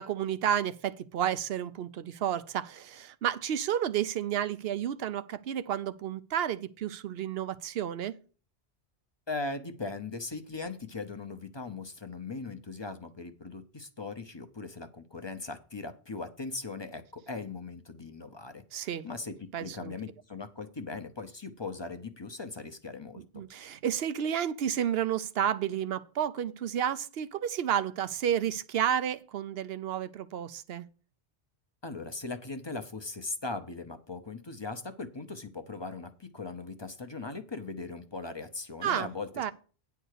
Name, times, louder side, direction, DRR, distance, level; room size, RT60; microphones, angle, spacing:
voice 1, 0.0-8.2 18.7-19.1 19.5-19.9 23.3-30.9 38.8-39.1 39.4-39.5, right 9 dB, 75° right, 0.9 m, -31 dB
voice 2, 9.3-23.4 31.8-39.5, left 3 dB, 30° left, 0.8 m, -39 dB
9.9 x 4.6 x 6.5 m
omnidirectional pair, 1.1 m